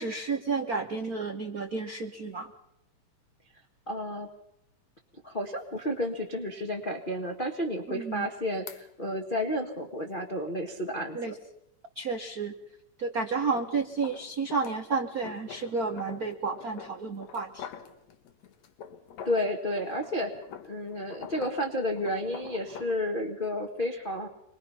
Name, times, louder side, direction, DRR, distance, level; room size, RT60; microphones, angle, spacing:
voice 1, 0.0-2.5 7.9-8.3 11.1-11.3 12.0-12.5 13.0-17.7, right 4 dB, 75° right, 5 dB, 0.8 m, -31 dB
voice 2, 3.9-4.3 5.2-11.3 19.2-20.3 20.6-24.3, left 1 dB, 25° left, 0 dB, 1.2 m, -31 dB
sound 1, 5.4-5.5 6.0-6.1 8.7-8.8 13.4-19.5 19.9-23.0, left 8 dB, 70° left, 2.6 m, -46 dB
26.0 x 21.5 x 5.8 m, 0.82 s
omnidirectional pair, 3.3 m